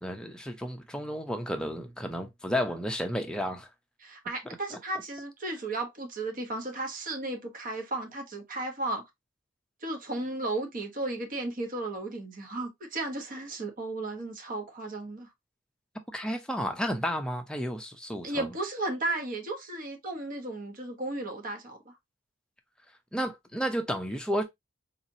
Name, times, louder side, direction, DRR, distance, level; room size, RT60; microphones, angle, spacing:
voice 1, 0.0-3.7 4.7-4.8 16.1-18.5 23.1-24.4, equal, 5° left, 0.6 m, -32 dB
voice 2, 4.0-9.0 9.8-15.3 18.2-21.8, right 2 dB, 40° right, 1.0 m, -34 dB
4.0 x 2.8 x 2.7 m
head